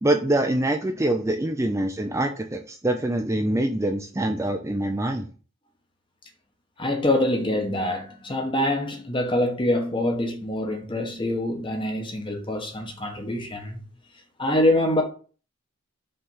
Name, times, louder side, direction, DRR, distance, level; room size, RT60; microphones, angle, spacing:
voice 1, 0.0-5.3, right 1 dB, 15° right, 0.5 m, -24 dB
voice 2, 6.8-13.8 14.4-15.0, left 1 dB, 25° left, 1.1 m, -25 dB
5.4 x 3.4 x 5.5 m
head